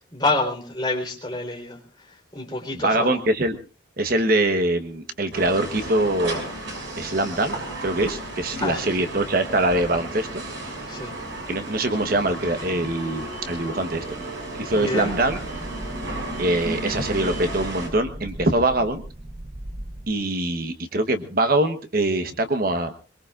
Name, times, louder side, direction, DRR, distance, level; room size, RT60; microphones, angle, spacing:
voice 1, 0.1-1.8 2.3-3.2 8.6-8.9 10.9-11.1 14.7-15.1, left 2 dB, 20° left, 0 dB, 3.9 m, -27 dB
voice 2, 2.7-3.6 4.0-6.4 7.0-7.5 7.8-10.4 11.5-14.0 14.5-15.4 16.4-19.0 20.1-22.9, right 2 dB, 50° right, 7 dB, 1.1 m, -23 dB
sound 1, 5.3-17.9, right 2 dB, 75° right, 6.3 m, -33 dB
sound 2, 15.0-20.1, right 1 dB, 30° right, 0.9 m, -38 dB
23.0 x 22.5 x 2.5 m, 0.34 s
head